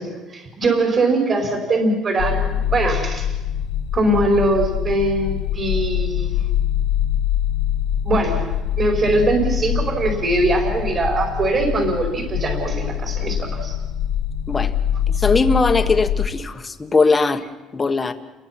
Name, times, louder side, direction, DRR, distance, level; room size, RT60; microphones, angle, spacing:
voice 1, 0.0-3.3 3.9-6.3 8.0-13.7, right 2 dB, 35° right, 2 dB, 4.9 m, -21 dB
sound 1, 2.2-16.3, left 10 dB, 80° left, 2.0 m, -24 dB
voice 2, 15.1-17.4 17.7-18.1, left 3 dB, 20° left, 8 dB, 1.4 m, -19 dB
30.0 x 22.5 x 6.0 m, 1.1 s
cardioid pair, 150°, 0 cm